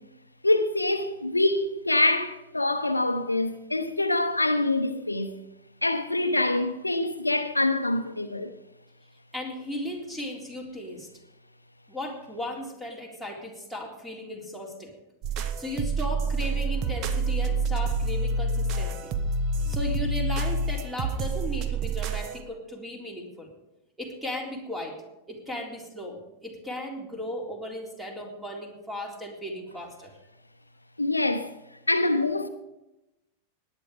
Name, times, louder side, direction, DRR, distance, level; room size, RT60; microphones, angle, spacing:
voice 1, 0.4-5.4 5.8-8.5 31.0-31.5 31.9-32.5, left 2 dB, 85° left, 0.9 m, -25 dB
voice 2, 9.3-11.1 11.9-14.9 15.6-19.1 19.7-23.5 24.0-24.9 25.3-30.1, left 1 dB, 5° right, 3.8 m, -36 dB
sound 1, 15.2-22.4, right 2 dB, 40° right, 1.2 m, -28 dB
18.0 x 10.0 x 5.1 m
figure-of-eight pair, 90°, 0 cm